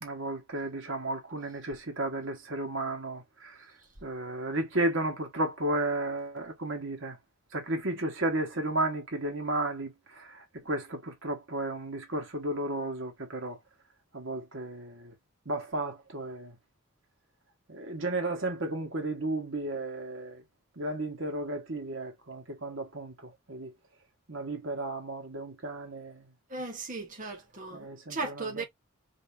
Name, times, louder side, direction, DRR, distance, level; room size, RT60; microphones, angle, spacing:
voice 1, 0.0-3.7 4.0-7.2 7.5-13.6 14.1-15.1 15.4-16.5 17.7-20.4 20.8-23.7 24.3-26.3 27.7-28.6, right 2 dB, 60° right, 1.3 m, -33 dB
voice 2, 26.5-28.6, right 3 dB, 40° right, 1.4 m, -37 dB
5.4 x 2.8 x 2.7 m
head